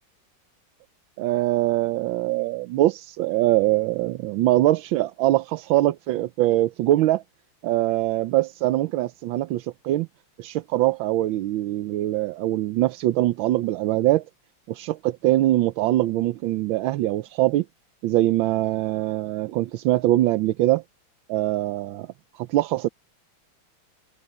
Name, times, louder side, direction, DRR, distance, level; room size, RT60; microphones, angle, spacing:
voice 1, 1.2-7.2 7.6-10.1 10.4-14.2 14.7-17.6 18.0-20.8 21.3-22.1 22.4-22.9, right 15 dB, 75° right, 1.4 m, -23 dB
omnidirectional pair, 2.3 m